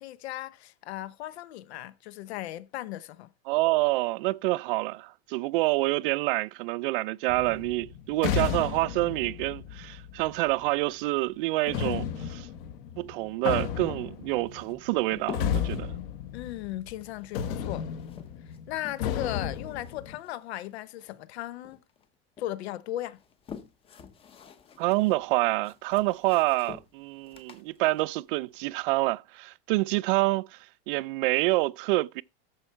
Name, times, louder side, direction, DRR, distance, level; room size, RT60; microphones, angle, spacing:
voice 1, 0.0-3.3 16.3-17.9 18.7-21.8 22.4-23.2, left 14 dB, 90° left, 0.8 m, -37 dB
voice 2, 3.5-12.5 13.0-15.9 24.8-30.6 30.9-32.2, right 21 dB, 60° right, 0.4 m, -27 dB
sound 1, 7.3-10.7 11.7-17.0 17.3-20.2, left 8 dB, 60° left, 1.5 m, -33 dB
sound 2, 14.5-15.8 16.9-19.2 19.5-21.4 21.6-22.5 23.0-29.1, left 7 dB, 20° left, 0.7 m, -48 dB
13.0 x 4.7 x 4.5 m
supercardioid pair, 165°, 31 cm